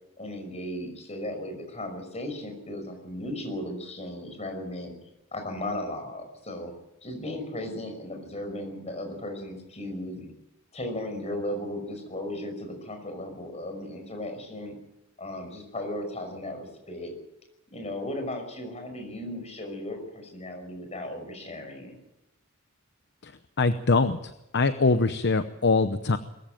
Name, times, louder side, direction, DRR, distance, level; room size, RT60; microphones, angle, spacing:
voice 1, 0.2-4.9 5.3-6.7 7.0-10.3 10.7-14.8 15.2-17.1 17.7-22.0, left 1 dB, 30° left, 5 dB, 5.8 m, -36 dB
voice 2, 23.6-26.2, left 3 dB, 55° left, 11 dB, 0.8 m, -23 dB
22.5 x 14.5 x 9.0 m, 0.89 s
head